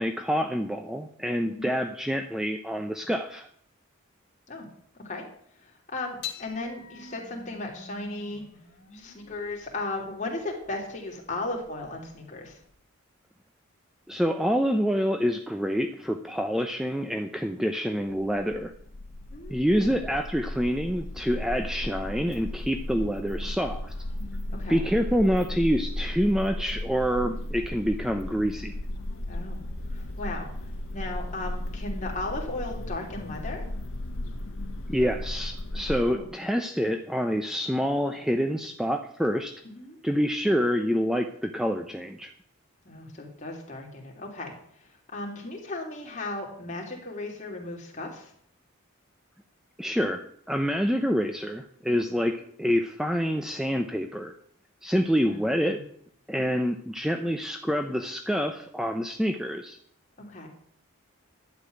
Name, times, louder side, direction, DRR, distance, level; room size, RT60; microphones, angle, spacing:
voice 1, 0.0-3.5 14.1-18.7 19.5-23.9 24.7-28.8 34.9-39.5 40.0-42.3 49.8-54.3 54.8-55.8 56.3-59.8, equal, ahead, 5 dB, 0.6 m, -27 dB
voice 2, 5.6-8.4 8.9-12.6 19.3-19.9 24.5-24.9 27.3-27.4 29.2-29.6 29.9-30.5 30.9-33.6 36.1-36.3 39.7-40.0 42.8-44.5 44.8-48.3 55.2-55.8 56.4-56.5 60.3-60.5, left 2 dB, 35° left, -1 dB, 3.0 m, -36 dB
sound 1, 6.2-12.8, left 7 dB, 55° left, 2.8 m, -46 dB
sound 2, 18.2-36.1, left 1 dB, 80° left, 1.2 m, -35 dB
11.5 x 5.9 x 9.2 m, 0.66 s
head